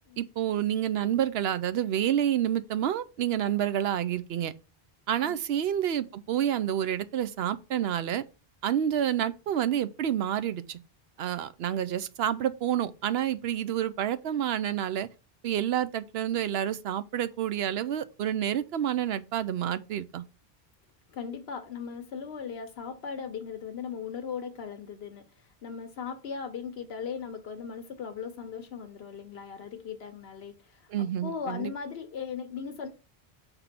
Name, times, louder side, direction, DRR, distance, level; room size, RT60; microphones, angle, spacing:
voice 1, 0.2-4.5 5.1-8.2 8.6-10.8 11.2-15.1 15.4-20.2 30.9-31.7, right 10 dB, 80° right, 0.8 m, -29 dB
voice 2, 21.1-32.9, left 6 dB, 75° left, 1.0 m, -38 dB
5.8 x 3.5 x 5.8 m
omnidirectional pair, 1.1 m